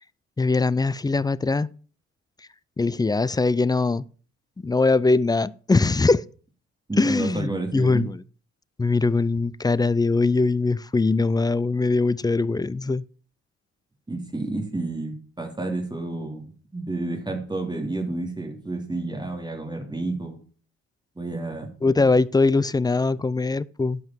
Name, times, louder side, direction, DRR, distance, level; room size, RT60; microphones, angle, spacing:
voice 1, 0.4-1.7 2.8-4.1 4.6-6.2 7.0-8.2 8.8-13.0 21.8-24.0, left 3 dB, 15° left, 0.4 m, -21 dB
voice 2, 6.9-8.0 14.1-20.4 21.2-21.7, right 2 dB, 15° right, 3.3 m, -30 dB
11.0 x 5.4 x 7.5 m
cardioid pair, 90°, 30 cm